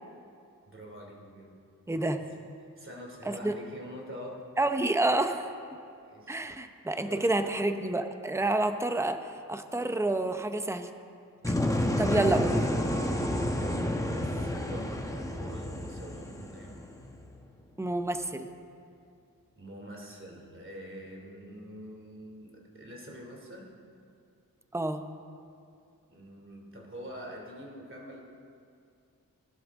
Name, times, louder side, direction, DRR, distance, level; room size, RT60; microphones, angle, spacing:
voice 1, 0.6-1.6 1.9-2.1 2.8-4.5 6.0-6.4 7.0-7.7 13.5-16.8 19.6-23.7 26.1-28.2, equal, 35° right, -1 dB, 2.8 m, -45 dB
voice 2, 1.9-2.2 3.3-3.5 4.6-5.5 6.3-10.9 11.5-11.6 12.0-12.7 17.8-18.5 24.7-25.1, right 2 dB, 10° right, 8 dB, 0.7 m, -29 dB
sound 1, 11.4-17.3, left 1 dB, 10° left, 1.1 m, -30 dB
20.5 x 11.5 x 3.7 m, 2.4 s
wide cardioid pair, 70°, 35 cm